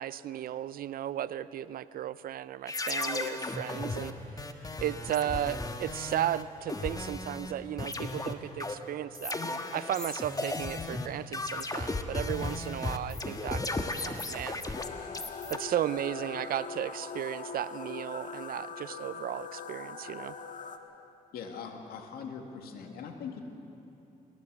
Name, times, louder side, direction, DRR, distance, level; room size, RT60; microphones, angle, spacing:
voice 1, 0.0-4.2 4.4-14.7 15.0-15.1 15.5-20.3, right 11 dB, 75° right, 16 dB, 0.6 m, -35 dB
sound 1, 2.7-7.5 7.8-15.6, left 2 dB, 25° left, 1.4 m, -35 dB
Mysterious cave with water drop sounds, 14.7-20.8, left 5 dB, 60° left, 1.6 m, -41 dB
voice 2, 21.3-23.4, left 6 dB, 90° left, 4 dB, 2.2 m, -41 dB
21.5 x 18.0 x 8.0 m, 2.8 s
cardioid pair, 75°, 15 cm